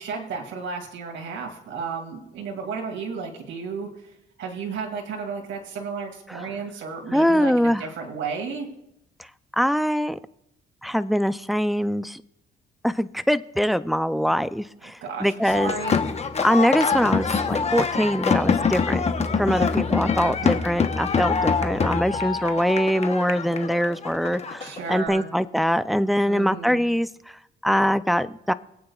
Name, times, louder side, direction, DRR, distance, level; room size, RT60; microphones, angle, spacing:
voice 1, 0.0-8.7 14.8-16.0 20.2-20.6 24.6-25.3 26.3-26.8, right 5 dB, 75° right, 1 dB, 2.3 m, -33 dB
voice 2, 7.1-7.8 9.2-9.3 9.5-10.2 10.8-12.2 12.8-15.7 16.4-19.0 19.4-28.5, equal, ahead, 13 dB, 0.4 m, -23 dB
sound 1, 15.5-25.0, left 5 dB, 35° left, 1.0 m, -25 dB
25.5 x 8.7 x 2.4 m, 0.81 s
cardioid pair, 90°, 20 cm